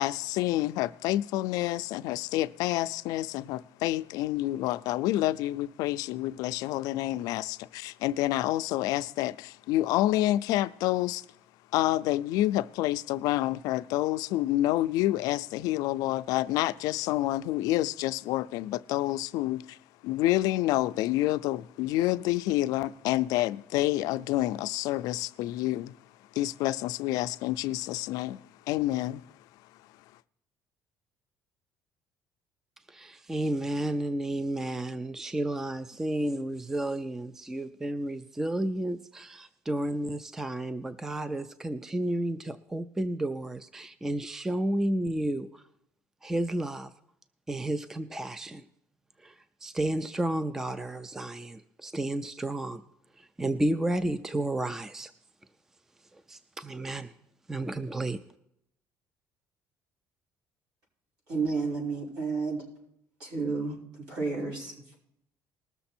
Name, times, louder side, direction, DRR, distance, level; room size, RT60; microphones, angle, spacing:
voice 1, 0.0-11.2 11.7-19.8 20.0-25.9 26.3-29.2, left 15 dB, 75° left, 0.4 m, -28 dB
voice 2, 32.9-45.6 46.2-46.9 47.5-48.6 49.2-52.8 53.2-55.1 56.1-57.1 57.5-58.2, right 1 dB, 5° right, 0.4 m, -32 dB
voice 3, 61.3-62.6 63.2-63.8 64.1-65.0, right 4 dB, 70° right, 5.7 m, -31 dB
20.0 x 6.8 x 4.3 m
cardioid pair, 175°, 6 cm